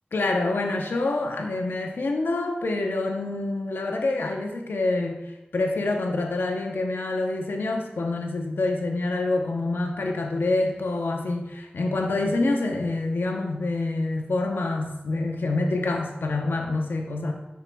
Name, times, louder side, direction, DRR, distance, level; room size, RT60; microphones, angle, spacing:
voice 1, 0.1-5.2 5.5-17.3, left 2 dB, 90° left, 3 dB, 0.7 m, -26 dB
9.9 x 4.7 x 2.2 m, 0.99 s
wide cardioid pair, 50°, 4 cm